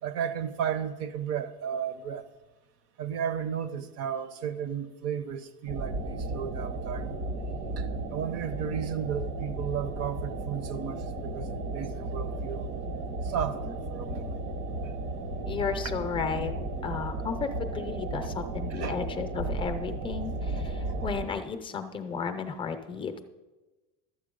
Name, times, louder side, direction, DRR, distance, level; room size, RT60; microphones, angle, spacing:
voice 1, 0.0-2.3 3.0-7.2 7.8-12.7 13.2-14.4 14.8-14.9 18.7-19.0, right 8 dB, 50° right, 0.8 m, -34 dB
sound 1, 5.7-21.3, right 2 dB, 80° right, 1.6 m, -34 dB
voice 2, 15.4-16.5 16.8-23.2, left 6 dB, 15° left, 0.6 m, -34 dB
12.5 x 8.0 x 5.2 m
cardioid pair, 180°, 32 cm